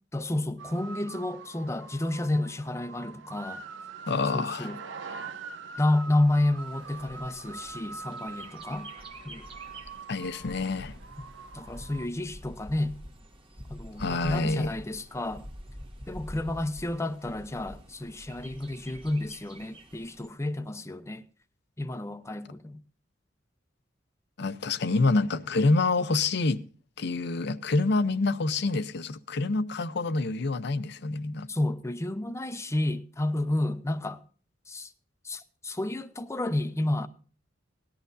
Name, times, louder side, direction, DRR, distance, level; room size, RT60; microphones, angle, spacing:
voice 1, 0.1-3.6 4.3-4.8 5.8-8.9 9.2-9.5 11.5-13.0 13.7-15.5 16.1-21.2 21.8-22.8 31.5-34.2 34.7-34.9 35.2-37.1, left 1 dB, 15° left, 0.7 m, -30 dB
sound 1, 0.6-12.1, right 4 dB, 80° right, 0.9 m, -43 dB
voice 2, 4.1-4.8 10.1-11.0 14.0-14.7 24.4-26.6 27.0-31.5, left 3 dB, 60° left, 0.7 m, -27 dB
Bird, 6.6-20.3, equal, 30° right, 1.4 m, -47 dB
18.5 x 11.5 x 2.6 m
head